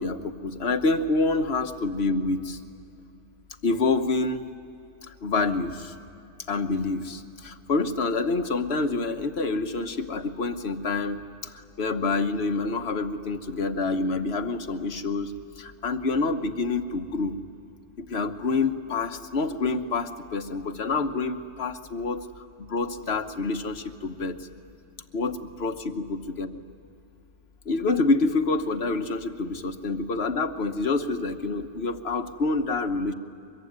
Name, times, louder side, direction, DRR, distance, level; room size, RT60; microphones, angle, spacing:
voice 1, 0.0-2.6 3.6-4.4 5.2-5.9 6.5-11.2 11.5-15.3 15.6-17.4 18.0-22.2 22.7-24.4 25.1-26.5 27.7-33.1, left 3 dB, 55° left, 8 dB, 1.4 m, -27 dB
24.0 x 23.0 x 9.5 m, 2.7 s
omnidirectional pair, 1.4 m